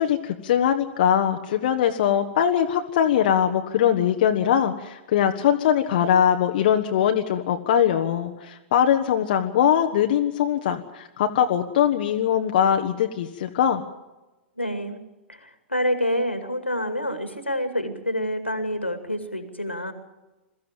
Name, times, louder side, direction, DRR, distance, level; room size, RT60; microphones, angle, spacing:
voice 1, 0.0-13.8, left 9 dB, 50° left, 5 dB, 1.2 m, -21 dB
voice 2, 14.6-15.0 15.3-19.9, equal, 85° left, 8 dB, 2.4 m, -27 dB
22.0 x 14.5 x 8.9 m, 1.0 s
figure-of-eight pair, 100°, 6 cm